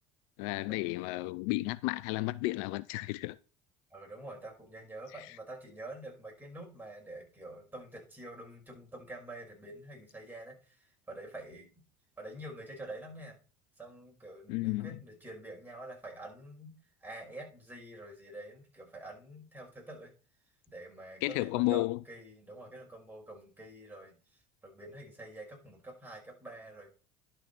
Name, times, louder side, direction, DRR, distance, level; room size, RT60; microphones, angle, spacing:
voice 1, 0.4-3.4 14.5-14.9 21.2-22.0, left 19 dB, 65° left, 0.4 m, -32 dB
voice 2, 3.9-11.7 12.2-13.4 13.8-20.1 20.7-26.9, right 1 dB, 10° right, 5.2 m, -47 dB
11.0 x 6.1 x 4.3 m
hypercardioid pair, 70°, 18 cm